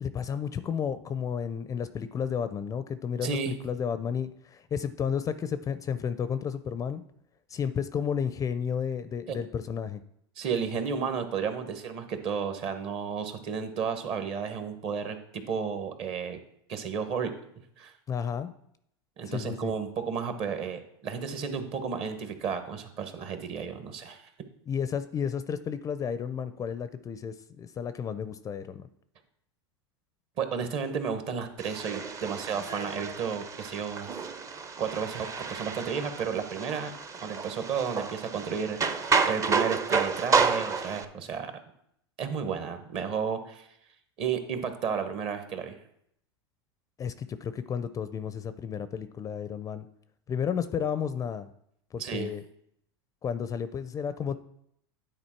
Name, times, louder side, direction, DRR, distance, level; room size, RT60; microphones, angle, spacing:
voice 1, 0.0-7.0 7.5-10.0 18.1-18.5 19.3-19.7 24.7-28.9 47.0-49.9 50.3-51.5 51.9-52.4 53.2-54.4, left 7 dB, 25° left, 13 dB, 0.4 m, -32 dB
voice 2, 3.2-3.6 9.3-9.4 10.4-16.4 16.7-17.3 17.8-17.9 19.2-24.2 30.4-34.2 34.8-36.9 37.2-38.8 39.2-41.5 42.2-43.7 44.2-45.8 52.0-52.3, right 6 dB, 45° right, 8 dB, 1.2 m, -32 dB
sound 1, 31.6-41.0, right 5 dB, 25° right, 0.6 m, -30 dB
9.7 x 4.0 x 4.5 m, 0.72 s
hypercardioid pair, 105°, 14 cm